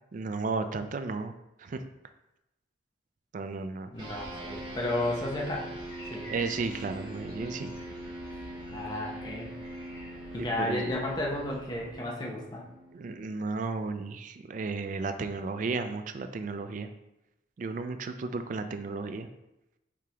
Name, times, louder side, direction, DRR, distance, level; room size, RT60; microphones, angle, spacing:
voice 1, 0.1-1.3 1.6-1.8 3.3-3.9 6.3-7.7 10.4-10.9 12.9-16.9 17.6-19.3, right 4 dB, 45° right, 9 dB, 0.3 m, -34 dB
sound 1, 3.9-11.9, left 1 dB, 75° left, 1.2 m, -48 dB
voice 2, 3.9-5.7 6.1-6.3 8.7-9.5 10.3-12.7, left 1 dB, 25° left, -2 dB, 0.7 m, -33 dB
sound 2, 4.0-13.7, right 1 dB, 25° right, 1.1 m, -43 dB
4.8 x 3.5 x 2.9 m, 0.92 s
head